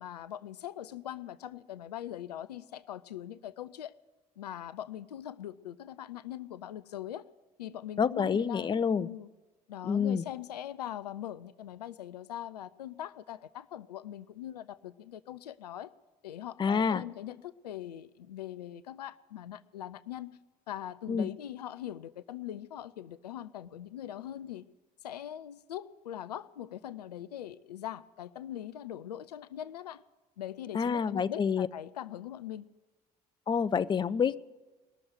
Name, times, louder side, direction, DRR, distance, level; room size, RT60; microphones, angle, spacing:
voice 1, 0.0-4.0 4.4-7.3 7.6-9.3 9.7-15.9 16.2-20.4 20.7-24.7 25.0-30.0 30.4-32.6, left 11 dB, 80° left, 16 dB, 0.4 m, -41 dB
voice 2, 8.0-9.1 9.8-10.2 16.6-17.0 21.1-21.3 30.7-31.7 33.5-34.4, left 6 dB, 25° left, 15 dB, 0.5 m, -28 dB
19.0 x 7.0 x 9.3 m, 1.2 s
figure-of-eight pair, 50°, 20 cm